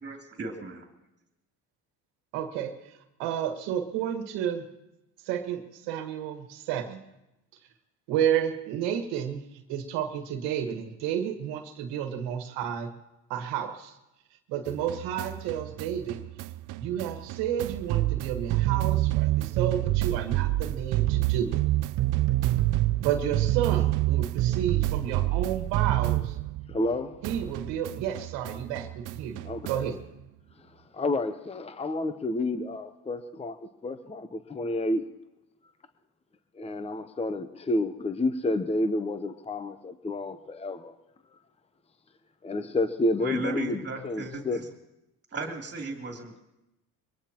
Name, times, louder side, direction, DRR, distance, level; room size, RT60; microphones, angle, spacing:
voice 1, 0.0-0.9 43.2-44.7 45.3-46.4, right 3 dB, 25° right, 0 dB, 2.8 m, -36 dB
voice 2, 2.3-2.7 3.2-4.6 5.3-7.0 8.1-12.9 13.3-13.9 14.5-16.2 16.8-21.6 23.0-26.4 27.2-30.0, right 9 dB, 80° right, 6 dB, 1.7 m, -31 dB
sound 1, 14.7-26.9 27.2-30.0, right 16 dB, 50° right, 0.4 m, -28 dB
voice 3, 26.7-27.1 29.5-29.9 30.9-33.6 33.8-35.0 36.6-40.9 42.4-44.6, left 2 dB, 15° left, 11 dB, 0.8 m, -30 dB
23.0 x 18.5 x 3.0 m, 0.92 s
supercardioid pair, 90°, 41 cm